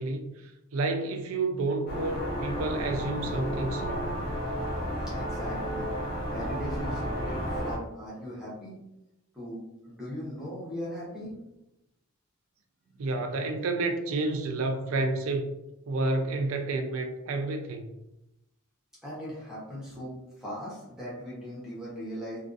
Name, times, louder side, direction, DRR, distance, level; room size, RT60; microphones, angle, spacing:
voice 1, 0.0-4.2 13.0-15.6 15.9-18.0, right 2 dB, 70° right, 5 dB, 0.4 m, -30 dB
sound 1, 1.9-7.8, equal, 40° left, 0.8 m, -32 dB
voice 2, 5.0-5.9 6.3-8.8 9.3-11.4 19.0-22.4, equal, 5° right, -8 dB, 0.7 m, -39 dB
2.4 x 2.3 x 2.4 m, 0.89 s
head